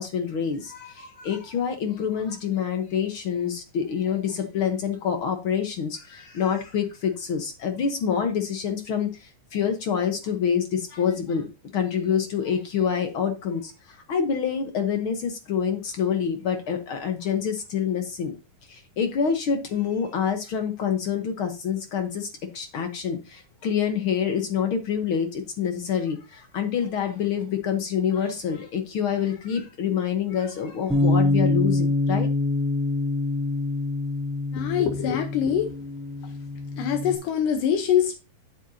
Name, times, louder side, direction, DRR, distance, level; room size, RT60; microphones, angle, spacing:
voice 1, 0.0-11.5 11.7-18.3 18.7-22.3 22.5-32.3, left 7 dB, 60° left, 6 dB, 1.4 m, -27 dB
Bass guitar, 30.9-37.1, left 2 dB, ahead, 2.6 m, -25 dB
voice 2, 34.5-35.7 36.2-36.3 36.8-38.1, left 9 dB, 80° left, 5 dB, 2.6 m, -24 dB
11.5 x 7.7 x 2.8 m, 0.29 s
omnidirectional pair, 3.8 m